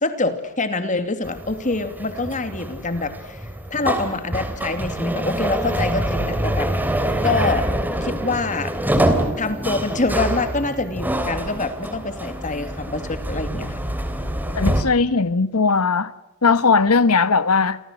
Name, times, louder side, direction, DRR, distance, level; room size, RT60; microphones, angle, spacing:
voice 1, 0.0-6.7 7.2-7.7 8.0-8.7 9.4-13.8, left 3 dB, 35° left, 2.7 m, -25 dB
sound 1, 1.2-14.8, right 1 dB, 10° right, 3.2 m, -25 dB
voice 2, 14.5-16.1 16.4-17.8, left 4 dB, 80° left, 1.3 m, -18 dB
29.5 x 25.0 x 6.4 m
head